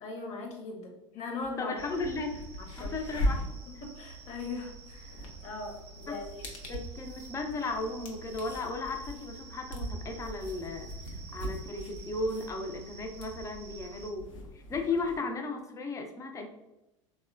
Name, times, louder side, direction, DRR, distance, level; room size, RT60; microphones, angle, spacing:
voice 1, 0.0-1.8 2.6-2.9 3.8-6.5, left 3 dB, 45° left, 1 dB, 0.8 m, -40 dB
sound 1, 1.4-1.5 1.8-15.2, equal, 75° left, 0.6 m, -39 dB
voice 2, 1.6-2.4 2.8-3.4 6.1-6.2 6.7-10.9 11.3-14.3 14.5-16.5, left 3 dB, 20° left, 4 dB, 0.4 m, -35 dB
sound 2, 1.8-14.1, right 3 dB, 40° right, 0.6 m, -48 dB
3.5 x 2.1 x 2.3 m, 0.94 s
figure-of-eight pair, 80°, 17 cm